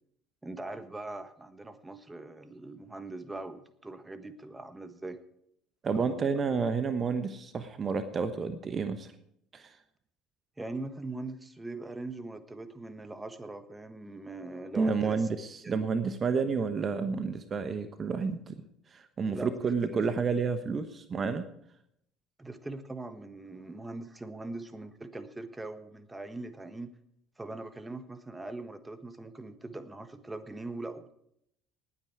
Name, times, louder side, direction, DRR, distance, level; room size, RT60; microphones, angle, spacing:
voice 1, 0.4-5.2 5.9-6.4 10.6-15.3 15.6-15.9 19.3-19.6 19.9-20.0 22.4-26.9 27.4-31.1, right 2 dB, 15° right, 11 dB, 1.4 m, -41 dB
voice 2, 5.8-9.1 9.5-9.8 14.7-18.6 18.9-21.4, right 5 dB, 35° right, 10 dB, 1.1 m, -30 dB
19.0 x 8.9 x 4.8 m, 0.73 s
figure-of-eight pair, 60°, 0 cm